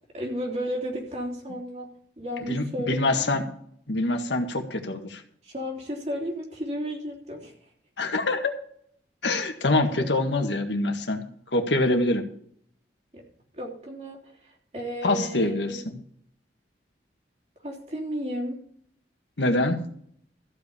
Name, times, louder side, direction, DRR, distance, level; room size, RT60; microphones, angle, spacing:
voice 1, 0.1-3.5 5.4-7.7 9.9-10.1 13.1-13.2 13.5-15.8 17.6-18.6, equal, 40° right, -1 dB, 3.3 m, -33 dB
voice 2, 2.5-3.4 3.9-5.2 8.0-8.5 9.2-11.2 11.5-12.2 15.0-15.8 19.4-19.8, left 2 dB, 85° left, 5 dB, 1.8 m, -25 dB
14.5 x 5.4 x 8.5 m, 0.62 s
head